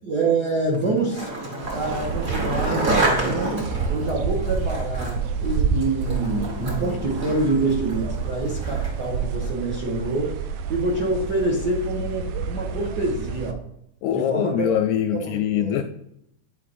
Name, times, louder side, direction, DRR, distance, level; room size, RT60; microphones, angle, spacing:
voice 1, 0.0-1.3 1.7-10.3 10.7-13.6 14.1-14.7 15.1-15.8, right 2 dB, 60° right, -4 dB, 1.1 m, -26 dB
Skateboard, 0.7-9.1, right 2 dB, 45° right, 1.2 m, -29 dB
sound 1, 1.6-13.5, right 5 dB, 80° right, 1.9 m, -29 dB
voice 2, 14.0-15.8, left 10 dB, 80° left, 7 dB, 1.6 m, -23 dB
9.0 x 4.7 x 2.5 m, 0.74 s
omnidirectional pair, 3.5 m